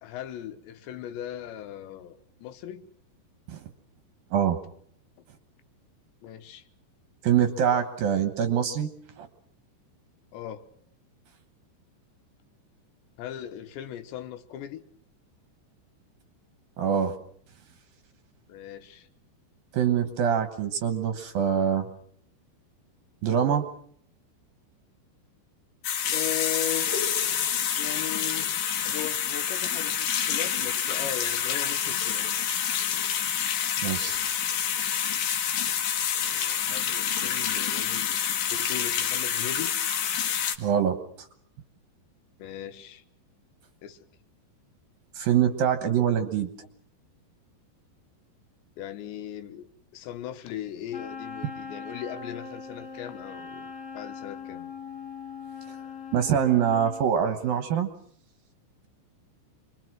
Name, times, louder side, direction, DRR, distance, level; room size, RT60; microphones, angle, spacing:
voice 1, 0.0-2.9 6.2-6.6 10.3-10.6 13.2-14.8 18.5-19.1 26.1-27.2 27.8-28.5 28.8-32.4 36.1-38.2 38.5-39.7 42.4-43.0 43.8-44.0 48.8-49.7 49.9-54.7, left 11 dB, 75° left, 3.3 m, -38 dB
voice 2, 7.2-8.9 9.2-9.3 16.8-17.1 19.7-21.9 23.2-23.6 33.8-34.2 40.6-41.3 45.1-46.5 56.1-57.9, right 8 dB, 65° right, 2.5 m, -24 dB
sound 1, 25.8-40.6, left 8 dB, 60° left, 2.4 m, -27 dB
Wind instrument woodwind instrument, 50.9-57.0, left 5 dB, 20° left, 2.5 m, -40 dB
27.5 x 22.5 x 6.1 m
omnidirectional pair, 5.3 m